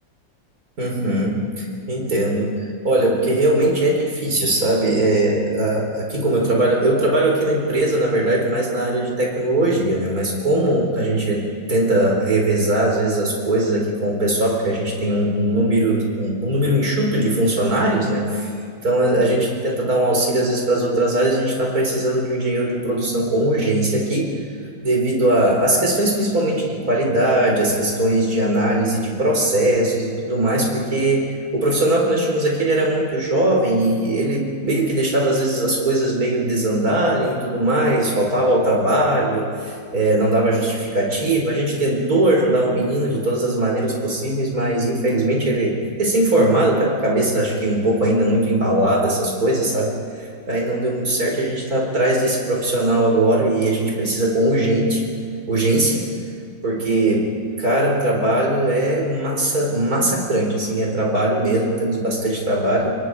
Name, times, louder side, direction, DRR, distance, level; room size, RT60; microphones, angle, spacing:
voice 1, 0.8-18.5 18.8-24.3 24.8-55.0 55.5-56.1 56.6-57.3 57.6-62.9, right 1 dB, 50° right, -1 dB, 4.7 m, -20 dB
27.0 x 22.5 x 4.9 m, 2.1 s
omnidirectional pair, 2.1 m